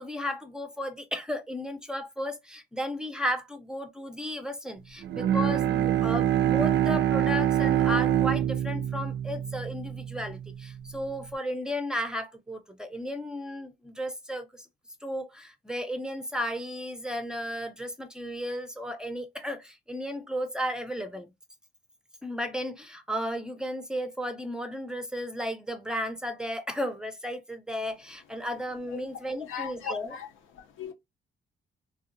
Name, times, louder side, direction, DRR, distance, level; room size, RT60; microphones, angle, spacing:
voice 1, 0.0-14.7 15.0-21.3 22.2-30.2, equal, 5° right, 0.5 m, -34 dB
Bowed string instrument, 5.0-10.4, right 11 dB, 65° right, 0.4 m, -25 dB
voice 2, 29.4-30.3 30.5-30.9, left 8 dB, 80° left, 0.6 m, -38 dB
2.7 x 2.4 x 2.5 m
cardioid pair, 90°, 20 cm